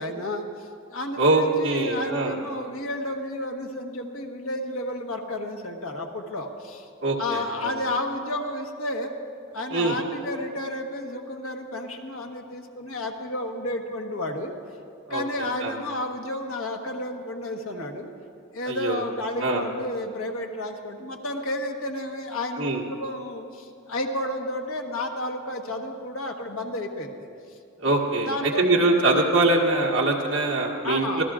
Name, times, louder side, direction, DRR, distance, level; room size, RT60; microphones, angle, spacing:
voice 1, 0.0-6.9 7.2-9.1 9.5-14.5 15.1-18.1 18.5-27.2 27.8-28.7 30.8-31.2, left 1 dB, 75° left, 2 dB, 1.3 m, -31 dB
voice 2, 1.2-2.4 7.0-7.7 9.7-10.0 15.1-15.2 15.6-15.7 18.7-19.0 19.4-19.6 22.6-22.8 27.8-31.2, right 2 dB, 60° right, -1 dB, 1.7 m, -23 dB
25.0 x 15.0 x 2.5 m, 2.3 s
head